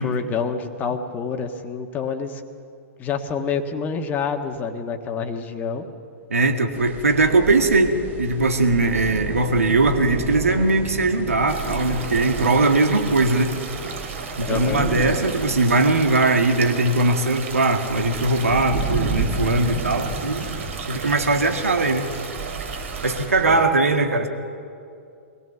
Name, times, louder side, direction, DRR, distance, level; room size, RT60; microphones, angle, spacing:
voice 1, 0.0-2.4 3.0-5.9 14.5-14.9 23.4-23.6, left 6 dB, 20° left, 5 dB, 1.5 m, -27 dB
voice 2, 6.3-13.5 14.4-20.4 20.9-22.1 23.0-24.3, right 2 dB, 75° right, 5 dB, 1.8 m, -20 dB
sound 1, 6.7-23.6, right 4 dB, 20° right, 2.1 m, -33 dB
sound 2, 11.5-23.3, right 4 dB, 60° right, 3.9 m, -34 dB
23.0 x 17.5 x 6.9 m, 2.5 s
figure-of-eight pair, 110°, 8 cm